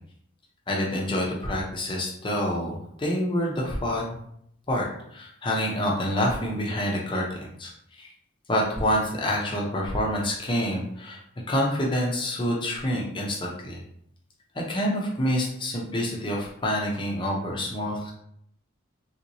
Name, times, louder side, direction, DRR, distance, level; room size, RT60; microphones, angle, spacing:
voice 1, 0.7-4.2 4.7-4.9 5.1-7.7 8.0-8.1 8.5-11.2 11.5-13.8 14.6-18.1, equal, 25° left, -2 dB, 0.6 m, -27 dB
3.5 x 2.9 x 2.7 m, 0.70 s
head